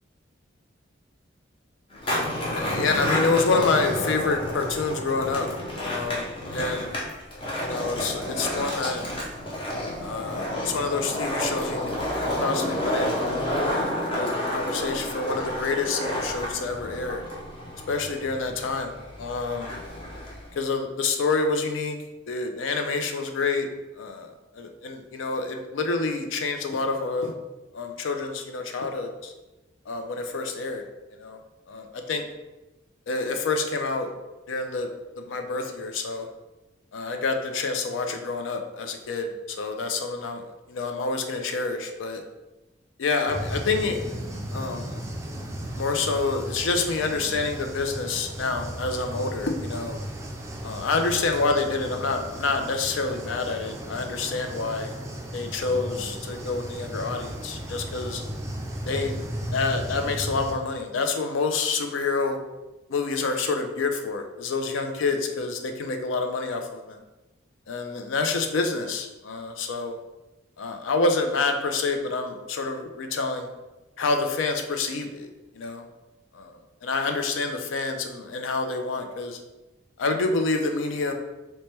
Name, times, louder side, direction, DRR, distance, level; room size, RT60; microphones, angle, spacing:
Skateboard, 1.9-20.6, left 1 dB, 25° left, 0.6 m, -30 dB
voice 1, 2.5-5.5 5.8-6.9 7.6-9.0 10.0-11.8 12.4-13.2 13.6-17.2 17.9-18.9 19.2-19.8 20.6-22.0 22.3-23.7 24.0-24.3 24.6-27.3 27.7-29.3 29.9-30.8 31.2-31.4 31.7-32.2 33.1-34.1 34.5-34.9 35.2-36.3 36.9-40.4 40.7-42.2 43.0-44.0 44.5-45.0 45.8-50.0 50.6-54.9 55.3-58.2 58.9-59.2 59.5-62.4 62.9-67.0 67.7-70.0 70.6-73.5 74.0-75.3 75.6-75.8 76.3-76.5 76.8-79.4 80.0-81.1, left 3 dB, 80° left, 5 dB, 0.4 m, -27 dB
sound 1, 43.3-60.5, right 1 dB, 15° right, 0.3 m, -35 dB
3.2 x 2.1 x 4.2 m, 1.1 s
head